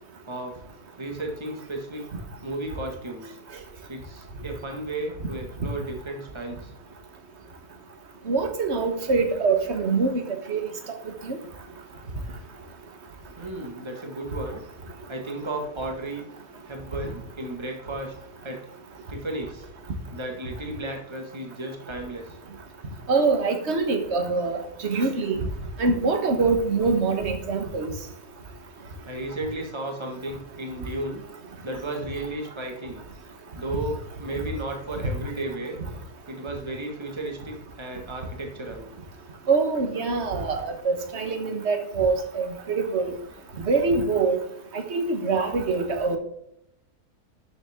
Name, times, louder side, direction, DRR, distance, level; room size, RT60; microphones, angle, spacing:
voice 1, 0.3-0.6 1.0-2.1 2.4-3.4 3.9-6.7 13.4-14.6 15.1-16.2 16.6-18.1 18.4-18.7 19.1-19.7 20.1-22.4 29.1-31.2 31.6-33.0 33.6-35.8 36.3-38.9, right 2 dB, 20° right, 2 dB, 1.8 m, -34 dB
voice 2, 8.3-10.2 10.5-10.6 11.2-11.4 23.1-25.4 25.8-27.9 39.5-43.1 43.6-44.4 44.7-46.2, right 4 dB, 45° right, 6 dB, 1.7 m, -24 dB
12.0 x 7.2 x 3.7 m, 0.79 s
omnidirectional pair, 1.6 m